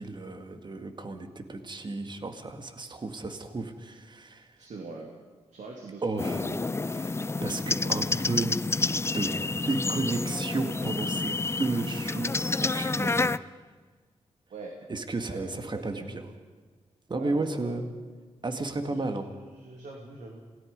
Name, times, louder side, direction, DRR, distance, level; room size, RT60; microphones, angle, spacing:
voice 1, 0.0-4.6 6.0-6.5 6.9-7.2 7.4-8.6 8.9-9.4 9.6-13.6 14.9-16.2 17.1-17.9 18.4-19.2, right 3 dB, 40° right, 7 dB, 2.1 m, -33 dB
voice 2, 4.6-5.1 5.5-6.9 7.6-8.3 14.5-14.7 15.3-15.4 15.8-16.0 17.1-17.7 18.8-20.4, right 3 dB, 80° right, 1 dB, 2.7 m, -43 dB
sound 1, 6.2-13.4, left 3 dB, 20° left, 0.5 m, -29 dB
27.5 x 18.0 x 5.4 m, 1.4 s
cardioid pair, 70°, 12 cm